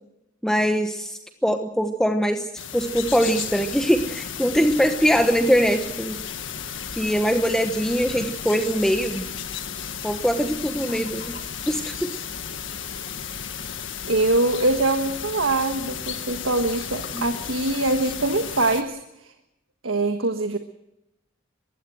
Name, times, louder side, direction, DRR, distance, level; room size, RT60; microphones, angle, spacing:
voice 1, 0.4-2.5 2.7-6.2 6.9-9.3 10.0-11.3 11.7-12.1 17.1-17.3, equal, 5° left, 6 dB, 1.1 m, -22 dB
sound 1, 2.6-18.8, left 7 dB, 70° left, 1.7 m, -34 dB
voice 2, 14.1-19.0 19.8-20.6, right 2 dB, 90° right, 7 dB, 1.5 m, -23 dB
22.0 x 16.0 x 7.7 m, 0.86 s
head